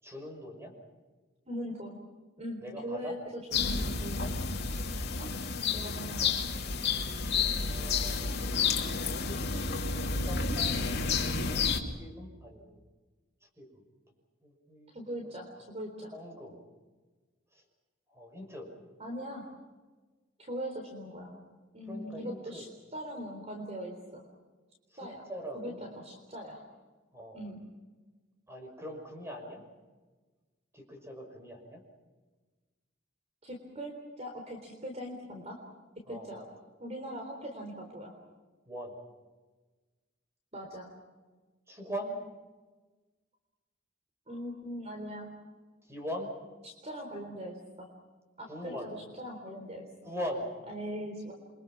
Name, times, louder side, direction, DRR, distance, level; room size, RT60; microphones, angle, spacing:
voice 1, 0.0-0.7 2.6-3.2 7.4-9.4 10.1-12.6 13.6-13.7 14.4-15.4 16.1-16.6 17.5-17.6 18.1-18.7 21.9-22.7 24.9-25.8 27.1-27.5 28.5-29.6 30.7-31.8 36.0-36.3 38.7-38.9 41.7-42.2 45.9-46.3 48.4-49.0 50.0-50.5, equal, 15° right, 4 dB, 6.0 m, -42 dB
voice 2, 1.5-2.0 2.4-4.5 5.2-5.3 5.7-6.4 14.9-16.1 19.0-19.5 20.4-21.3 21.7-24.3 25.0-26.6 27.3-27.6 33.4-35.6 36.1-36.5 36.8-38.2 40.5-40.9 44.3-45.3 46.6-47.9 48.4-49.9 50.7-51.3, equal, 35° right, 2 dB, 3.8 m, -41 dB
sound 1, 3.5-11.8, left 5 dB, 55° left, 2.7 m, -30 dB
28.5 x 24.0 x 6.1 m, 1.3 s
head